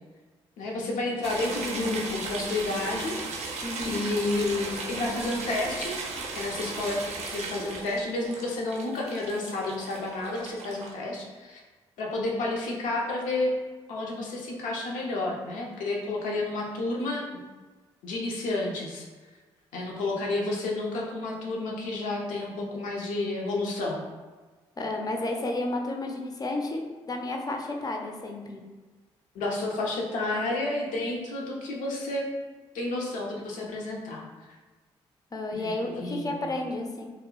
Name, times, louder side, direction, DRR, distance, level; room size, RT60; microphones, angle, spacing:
voice 1, 0.6-3.2 3.8-6.0 6.3-11.6 12.0-13.5 13.9-17.2 18.0-19.0 19.7-24.0 29.3-32.3 32.7-34.6 35.5-36.5, left 2 dB, 70° left, -2 dB, 0.6 m, -30 dB
sound 1, 1.2-10.9, right 3 dB, 55° right, 0.5 m, -36 dB
voice 2, 3.6-4.0 24.8-26.8 27.1-28.6 35.3-37.1, left 2 dB, 30° left, 2 dB, 0.5 m, -31 dB
2.2 x 2.0 x 3.6 m, 1.3 s
hypercardioid pair, 45°, 14 cm